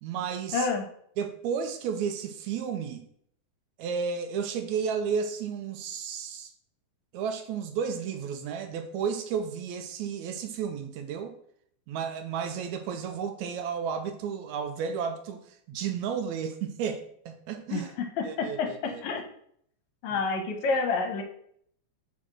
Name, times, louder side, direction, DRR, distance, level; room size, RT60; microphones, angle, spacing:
voice 1, 0.0-0.7 1.2-3.1 3.8-6.5 7.1-11.3 11.9-17.9 18.2-19.0 20.1-20.2 20.7-20.8, right 7 dB, 80° right, 6 dB, 1.8 m, -32 dB
voice 2, 0.5-0.8 17.7-19.2 20.0-21.2, left 4 dB, 75° left, 5 dB, 2.0 m, -29 dB
5.0 x 4.2 x 5.9 m, 0.66 s
omnidirectional pair, 3.5 m